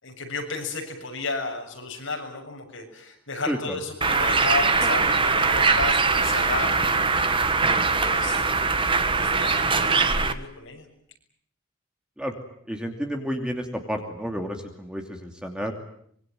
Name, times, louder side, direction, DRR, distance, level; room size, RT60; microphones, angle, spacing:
voice 1, 0.0-7.0 7.7-8.5 9.1-10.9, left 3 dB, 65° left, 2 dB, 7.2 m, -33 dB
voice 2, 3.5-3.8 12.2-12.3 12.7-15.7, equal, 5° right, 3 dB, 2.8 m, -31 dB
Bird, 4.0-10.3, right 4 dB, 25° right, 1.3 m, -22 dB
25.5 x 23.0 x 9.2 m, 0.68 s
head